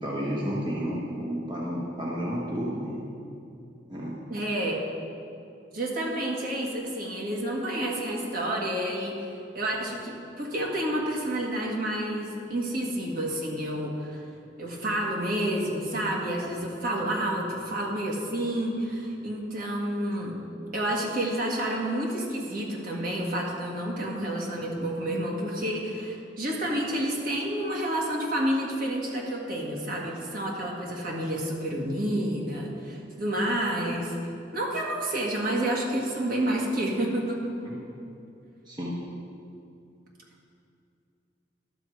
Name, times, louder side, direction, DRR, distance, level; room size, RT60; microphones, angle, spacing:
voice 1, 0.0-3.0 3.9-4.2 37.6-37.8 38.7-39.0, equal, 25° right, -5 dB, 1.1 m, -31 dB
voice 2, 4.3-4.8 5.7-9.2 9.5-14.2 14.6-20.4 20.7-34.2 34.5-37.4, right 1 dB, 50° right, -2 dB, 1.7 m, -29 dB
12.0 x 7.0 x 4.8 m, 2.7 s
head